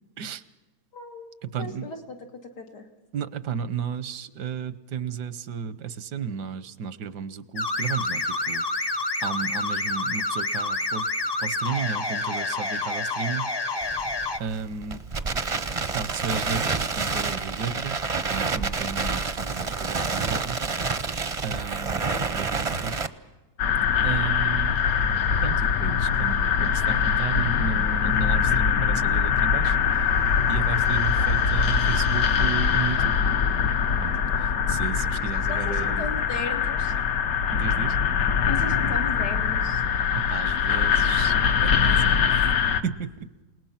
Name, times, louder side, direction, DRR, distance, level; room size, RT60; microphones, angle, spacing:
voice 1, 0.9-2.8 35.5-36.9 38.5-39.8, left 3 dB, 85° left, 3 dB, 2.7 m, -36 dB
voice 2, 1.5-1.9 3.1-8.6 9.2-11.1 11.4-13.5 14.4-15.0 15.8-18.0 18.3-20.6 21.4-22.1 22.3-23.0 24.0-24.8 25.4-29.8 30.5-33.2 34.0-34.1 34.7-36.0 37.5-38.0 40.1-41.3 41.6-42.5 42.8-43.3, right 6 dB, 85° right, 15 dB, 1.5 m, -33 dB
sound 1, 7.6-14.4, left 2 dB, 30° left, 0.5 m, -28 dB
Crackle, 13.8-23.1, right 4 dB, 35° right, 0.5 m, -28 dB
sound 2, 23.6-42.8, left 7 dB, 65° left, 1.4 m, -23 dB
29.0 x 18.5 x 5.8 m, 1.1 s
omnidirectional pair, 1.7 m